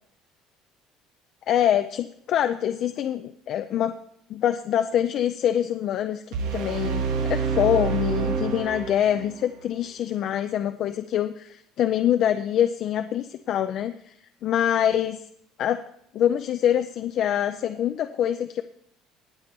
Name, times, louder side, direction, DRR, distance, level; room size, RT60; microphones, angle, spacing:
voice 1, 1.5-4.0 4.3-6.2 6.5-14.1 14.4-15.2 15.6-15.8 16.1-18.6, left 10 dB, 40° left, 8 dB, 0.4 m, -25 dB
sound 1, 6.3-9.4, right 6 dB, 85° right, 1.7 m, -27 dB
19.0 x 7.0 x 4.4 m, 0.70 s
cardioid pair, 180°, 0 cm